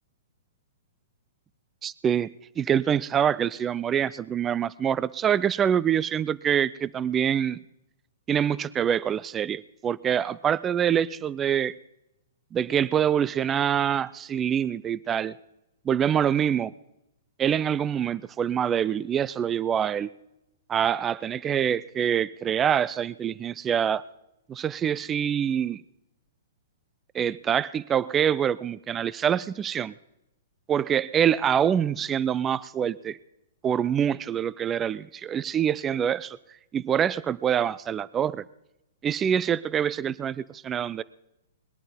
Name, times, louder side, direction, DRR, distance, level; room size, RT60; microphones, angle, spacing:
voice 1, 1.8-7.6 8.3-11.8 12.5-15.3 15.9-16.7 17.4-20.1 20.7-24.0 24.5-25.8 27.1-29.9 30.7-33.2 33.6-36.4 36.7-38.4 39.0-41.0, right 9 dB, 20° right, 20 dB, 0.4 m, -25 dB
20.5 x 11.0 x 5.2 m, 0.86 s
hypercardioid pair, 125°, 0 cm